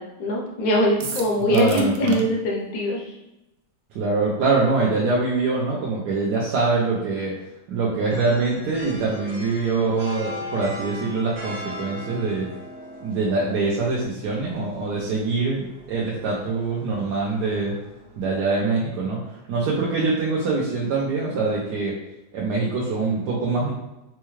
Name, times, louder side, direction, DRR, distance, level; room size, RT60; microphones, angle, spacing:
voice 1, 0.0-3.1, equal, 65° left, -1 dB, 0.9 m, -22 dB
sound 1, 1.0-2.2, right 5 dB, 85° right, 0.7 m, -34 dB
voice 2, 1.5-2.2 3.9-7.4 7.7-12.5 13.0-17.7 18.2-22.0 22.3-23.7, right 3 dB, 70° right, -4 dB, 1.1 m, -24 dB
sound 2, 8.1-18.4, left 1 dB, 45° right, 1.2 m, -40 dB
4.5 x 2.2 x 3.0 m, 0.96 s
omnidirectional pair, 2.0 m